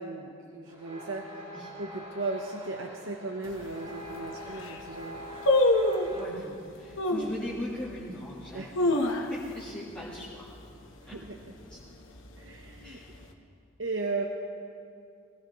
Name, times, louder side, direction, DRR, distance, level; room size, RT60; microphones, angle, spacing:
voice 1, 0.0-5.2 8.5-8.7 11.0-11.4 12.4-13.0 13.8-14.3, right 3 dB, 65° right, 1 dB, 0.9 m, -36 dB
sound 1, 0.7-6.3, equal, 30° right, 2.6 m, -44 dB
sound 2, 3.4-3.5 4.1-4.2 4.5-4.8 5.5-6.2 7.0-7.4 7.9-8.0 8.5-9.6 9.9-10.0 10.4-10.7 11.1-11.5 12.1-12.9 13.1-13.2, left 1 dB, 65° left, 1.2 m, -25 dB
voice 2, 6.1-8.9 9.3-10.5 11.1-11.2 11.7-11.8 12.8-13.2, left 1 dB, 5° left, -9 dB, 1.7 m, -40 dB
23.0 x 16.5 x 3.1 m, 2.5 s
head